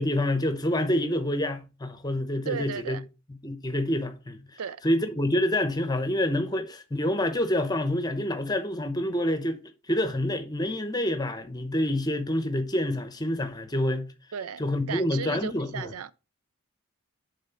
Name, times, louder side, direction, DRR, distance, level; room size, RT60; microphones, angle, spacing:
voice 1, 0.0-3.0 3.4-9.6 9.9-14.1 14.6-15.9, left 1 dB, 20° left, 0.8 m, -27 dB
voice 2, 2.5-3.0 4.6-4.8 14.3-14.6 14.9-16.1, right 7 dB, 85° right, 0.5 m, -34 dB
7.4 x 3.7 x 5.6 m
head